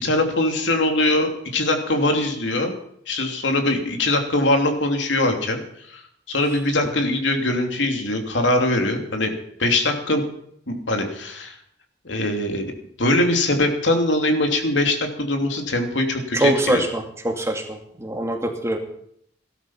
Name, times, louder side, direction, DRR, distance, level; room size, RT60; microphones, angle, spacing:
voice 1, 0.0-2.7 3.1-6.0 6.3-10.2 10.7-11.6 12.0-12.7 13.0-16.8, left 2 dB, 80° left, 4 dB, 2.9 m, -22 dB
voice 2, 16.3-18.8, right 1 dB, 15° right, 3 dB, 2.3 m, -23 dB
18.0 x 12.5 x 5.7 m, 0.69 s
head